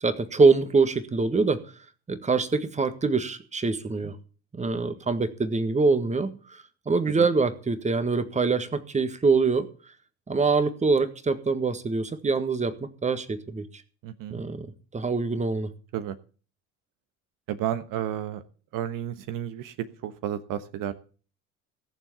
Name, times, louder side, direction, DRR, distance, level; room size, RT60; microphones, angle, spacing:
voice 1, 0.0-1.6 2.1-4.2 4.5-9.7 10.3-13.7 14.3-15.7, right 4 dB, 15° right, 12 dB, 1.7 m, -24 dB
voice 2, 14.0-14.4 15.9-16.1 17.5-18.4 18.7-20.9, right 11 dB, 50° right, 11 dB, 1.3 m, -32 dB
18.5 x 7.1 x 7.2 m, 0.39 s
figure-of-eight pair, 65°, 44 cm